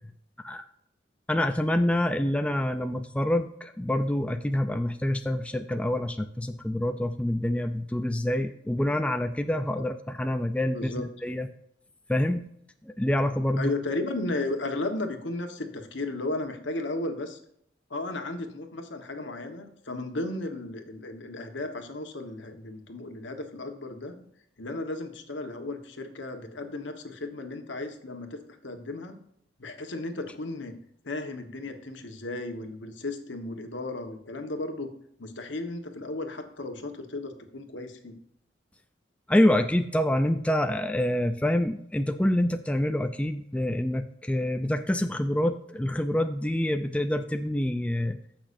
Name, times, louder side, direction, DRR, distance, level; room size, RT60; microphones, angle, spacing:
voice 1, 1.3-11.5 12.1-12.5 12.9-13.7 39.3-48.2, left 1 dB, 5° left, 8 dB, 0.4 m, -26 dB
voice 2, 10.7-11.0 13.6-17.4 17.9-24.2 24.6-29.2 29.6-30.7 31.0-34.9 35.2-38.2, left 2 dB, 75° left, 6 dB, 1.3 m, -34 dB
15.0 x 6.0 x 2.6 m, 0.71 s
head